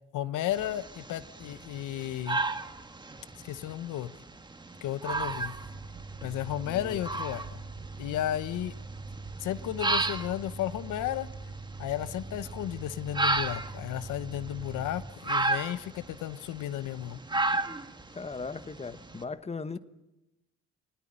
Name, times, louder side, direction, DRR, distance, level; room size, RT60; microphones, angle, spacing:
voice 1, 0.1-2.4 3.4-4.1 4.8-5.6 6.2-7.6 8.0-8.7 9.4-11.3 11.8-17.2, left 12 dB, 85° left, 0.9 m, -33 dB
sound 1, 0.5-19.2, right 2 dB, 15° right, 1.5 m, -35 dB
sound 2, 5.1-15.1, right 3 dB, 90° right, 3.0 m, -43 dB
voice 2, 6.7-7.0 18.1-19.8, left 4 dB, 20° left, 1.2 m, -38 dB
22.0 x 19.0 x 8.8 m
cardioid pair, 90°, 30 cm